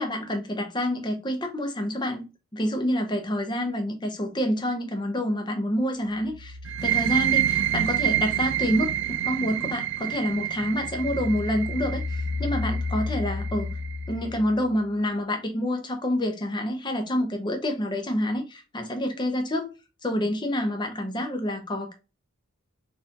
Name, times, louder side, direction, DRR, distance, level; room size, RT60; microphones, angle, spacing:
voice 1, 0.0-2.2 2.5-8.9 9.2-13.8 14.1-19.7 20.0-21.9, equal, 20° left, 0.7 m, -27 dB
sound 1, 6.0-9.9 10.3-14.9, left 3 dB, 90° left, 0.8 m, -34 dB
sound 2, 6.7-14.1, right 11 dB, 55° right, 0.3 m, -28 dB
4.2 x 2.6 x 2.8 m
head